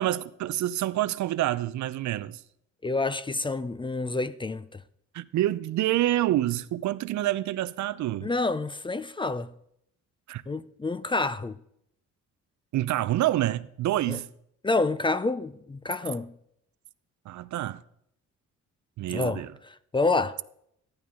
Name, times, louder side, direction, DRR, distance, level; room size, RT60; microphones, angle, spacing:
voice 1, 0.0-2.4 5.1-8.3 10.3-10.4 12.7-14.3 17.3-17.8 19.0-19.5, right 14 dB, 70° right, 0.6 m, -27 dB
voice 2, 2.8-4.8 8.2-9.5 10.5-11.6 14.1-14.2 14.6-16.3 19.1-19.4 19.9-20.4, left 3 dB, 15° left, 0.5 m, -28 dB
13.5 x 11.5 x 3.6 m
cardioid pair, 90°, 30 cm